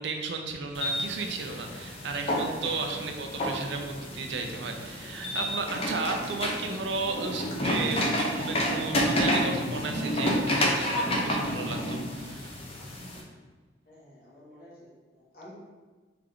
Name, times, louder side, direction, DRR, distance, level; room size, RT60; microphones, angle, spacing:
voice 1, 0.0-12.6, right 3 dB, 75° right, 4 dB, 0.5 m, -34 dB
sound 1, 0.7-13.2, equal, 35° left, 0.7 m, -30 dB
voice 2, 13.9-15.5, left 1 dB, 55° left, -6 dB, 1.5 m, -51 dB
3.6 x 3.4 x 3.6 m, 1.3 s
head